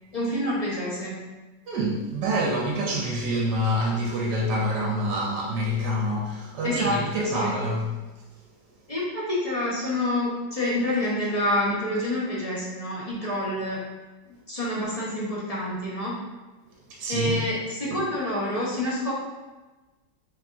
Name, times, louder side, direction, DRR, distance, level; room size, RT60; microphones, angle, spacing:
voice 1, 0.1-1.1 6.6-7.5 8.9-13.8 14.5-16.2 17.1-19.1, left 1 dB, 25° left, -7 dB, 0.9 m, -27 dB
voice 2, 1.7-7.9 16.9-17.4 17.9-18.0, equal, 70° right, -1 dB, 1.1 m, -26 dB
5.6 x 3.5 x 2.6 m, 1.2 s
omnidirectional pair, 2.0 m